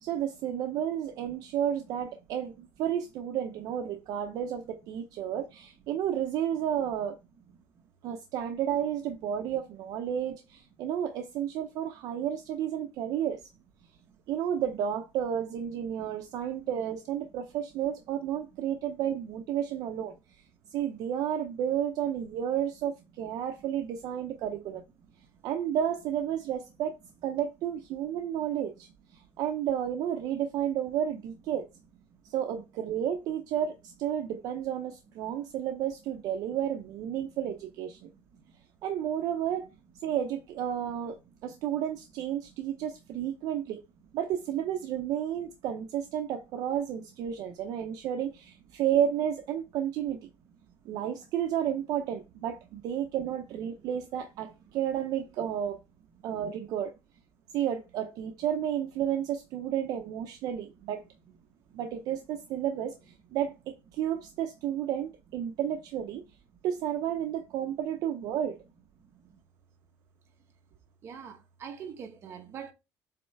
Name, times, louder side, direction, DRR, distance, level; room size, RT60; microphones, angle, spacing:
voice 1, 0.0-7.2 8.0-13.5 14.3-20.1 20.7-24.8 25.4-26.9 27.2-28.9 29.1-31.7 32.3-38.1 38.8-39.7 40.0-43.8 44.1-50.3 50.9-55.8 56.2-56.9 57.5-61.0 61.7-66.2 66.6-68.6, right 10 dB, 55° right, 0.7 m, -32 dB
voice 2, 71.0-72.7, right 7 dB, 35° right, 1.3 m, -43 dB
7.8 x 3.1 x 4.5 m
cardioid pair, 170°, 8 cm